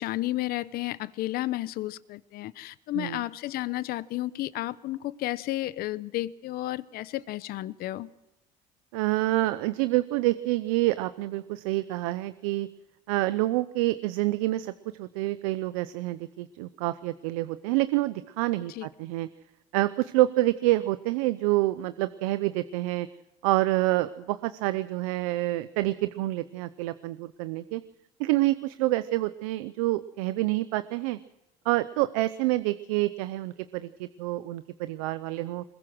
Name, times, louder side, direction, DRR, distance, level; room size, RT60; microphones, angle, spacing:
voice 1, 0.0-8.1 18.7-18.9, left 16 dB, 65° left, 0.9 m, -32 dB
voice 2, 8.9-12.7 13.1-14.7 15.0-19.3 19.7-23.1 23.4-27.8 28.2-31.2 31.6-35.6, right 18 dB, 85° right, 0.7 m, -27 dB
21.5 x 21.0 x 6.2 m
supercardioid pair, 80°, 17 cm